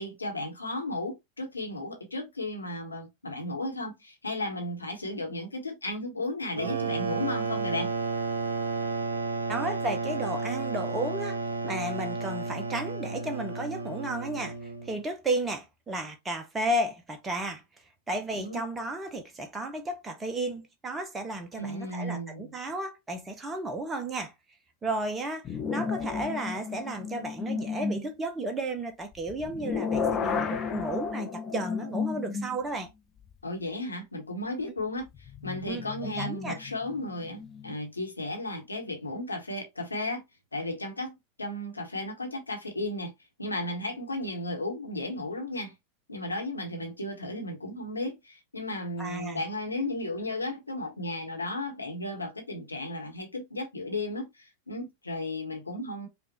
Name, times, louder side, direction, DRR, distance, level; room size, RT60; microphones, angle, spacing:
voice 1, 0.0-7.9 18.3-18.6 21.6-22.5 33.4-40.2 40.5-43.1 43.4-45.7 46.1-56.1, left 1 dB, 80° left, 1.2 m, -34 dB
sound 1, 6.5-15.0, right 4 dB, 75° right, 0.6 m, -32 dB
voice 2, 9.5-11.4 11.6-17.6 18.1-24.3 24.8-32.9 35.7-36.6 49.0-49.4, right 1 dB, 15° right, 0.7 m, -33 dB
sound 2, 25.4-28.1 29.1-32.8 33.3-33.4 35.2-37.7, left 5 dB, 25° left, 0.6 m, -33 dB
5.2 x 2.4 x 2.9 m
figure-of-eight pair, 90°, 0 cm